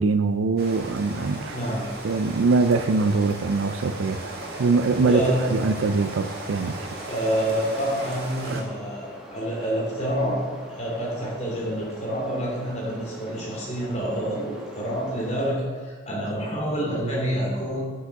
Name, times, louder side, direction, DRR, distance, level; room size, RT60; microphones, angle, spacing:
voice 1, 0.0-1.6 2.0-4.3 4.6-6.9 8.5-8.6, right 4 dB, 75° right, 10 dB, 0.4 m, -23 dB
Rain, 0.6-8.6, right 2 dB, 50° right, 1.6 m, -37 dB
voice 2, 1.5-1.9 4.5-4.7 5.1-5.5 7.0-10.4 10.7-17.8, equal, 35° left, -4 dB, 2.8 m, -27 dB
sound 1, 4.2-15.5, right 1 dB, 5° right, 1.4 m, -44 dB
8.2 x 6.2 x 5.9 m, 1.5 s
head